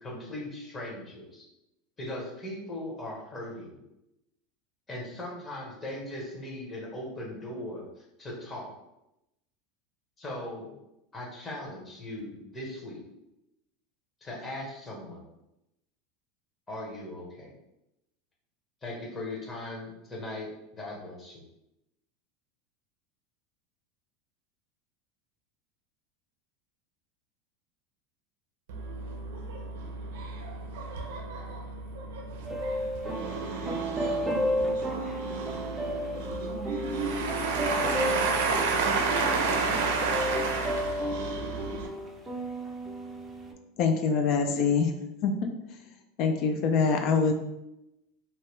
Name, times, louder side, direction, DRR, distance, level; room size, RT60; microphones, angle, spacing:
voice 1, 0.0-1.4 2.0-3.8 4.9-7.8 8.2-8.7 10.2-10.7 11.1-13.0 14.2-15.2 16.7-17.5 18.8-21.4, left 1 dB, 20° left, -3 dB, 1.0 m, -39 dB
voice 2, 28.7-41.9, right 4 dB, 80° right, 2 dB, 0.6 m, -31 dB
sound 1, 32.5-43.5, equal, 15° right, 0.4 m, -33 dB
voice 3, 43.8-45.0 45.2-45.8 46.2-47.3, left 5 dB, 50° left, 5 dB, 0.3 m, -25 dB
2.7 x 2.1 x 3.1 m, 0.88 s
supercardioid pair, 125°, 0 cm